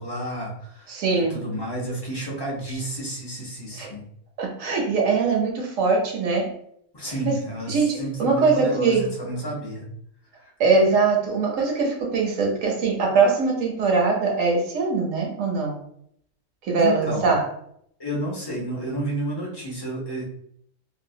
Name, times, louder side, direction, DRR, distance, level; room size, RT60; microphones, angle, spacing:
voice 1, 0.0-4.0 6.9-9.8 10.4-10.5 16.8-17.3 18.0-20.2, right 1 dB, 25° left, -3 dB, 0.5 m, -31 dB
voice 2, 0.9-1.4 3.8-3.9 4.4-6.5 7.2-7.4 7.7-9.1 10.6-15.8 16.6-17.4, right 4 dB, 70° right, 0 dB, 1.1 m, -22 dB
2.7 x 2.2 x 2.7 m, 0.70 s
omnidirectional pair, 1.5 m